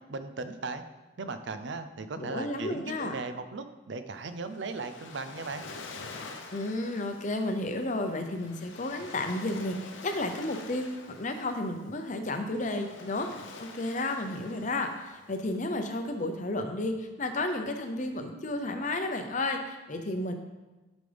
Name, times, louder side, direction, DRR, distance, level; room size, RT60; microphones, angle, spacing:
voice 1, 0.1-0.8 1.2-5.6, right 3 dB, 65° right, 9 dB, 0.6 m, -37 dB
voice 2, 2.2-3.1 6.5-13.3 13.6-20.3, left 2 dB, 40° left, 6 dB, 0.7 m, -32 dB
Waves surf, 4.1-16.5, left 3 dB, 70° left, 0.8 m, -47 dB
11.5 x 5.1 x 3.4 m, 1.2 s
head